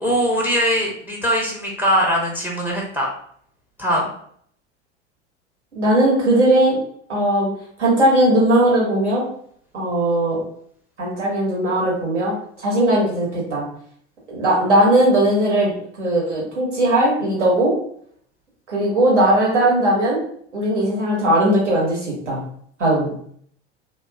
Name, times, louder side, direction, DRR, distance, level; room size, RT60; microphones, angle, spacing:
voice 1, 0.0-3.1 3.8-4.1, equal, 5° right, -1 dB, 0.5 m, -21 dB
voice 2, 5.7-6.8 7.1-7.5 7.8-9.2 9.7-10.4 11.0-13.6 14.3-15.7 16.0-17.7 18.7-20.2 20.5-22.4 22.8-23.1, right 1 dB, 80° right, -4 dB, 1.2 m, -18 dB
2.9 x 2.2 x 2.3 m, 0.63 s
figure-of-eight pair, 80°, 35 cm